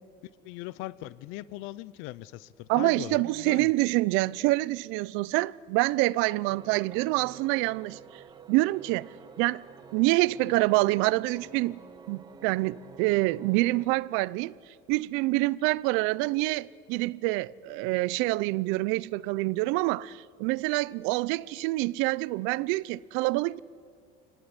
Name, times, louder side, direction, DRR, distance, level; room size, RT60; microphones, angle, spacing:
voice 1, 0.4-3.7, left 16 dB, 75° left, 0.7 m, -40 dB
voice 2, 2.7-8.0 8.5-9.1 9.4-9.6 9.9-11.8 12.1-14.5 14.9-23.6, right 20 dB, 80° right, 0.6 m, -26 dB
sound 1, 6.5-13.9, right 6 dB, 20° right, 1.0 m, -49 dB
26.5 x 18.5 x 9.9 m
cardioid pair, 165°, 20 cm